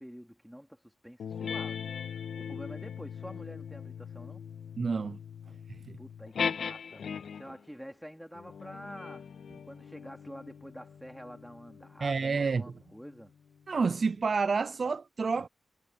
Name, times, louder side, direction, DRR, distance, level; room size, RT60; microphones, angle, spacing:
voice 1, 0.0-1.9 2.4-4.4 6.0-9.3 9.7-13.3, equal, ahead, 3.8 m, -47 dB
sound 1, 1.2-7.6 8.3-13.3, left 7 dB, 75° left, 1.7 m, -40 dB
voice 2, 4.8-5.2 5.7-6.0 12.0-12.6 13.7-15.5, right 4 dB, 40° right, 0.4 m, -29 dB
wide cardioid pair, 170°, 0 cm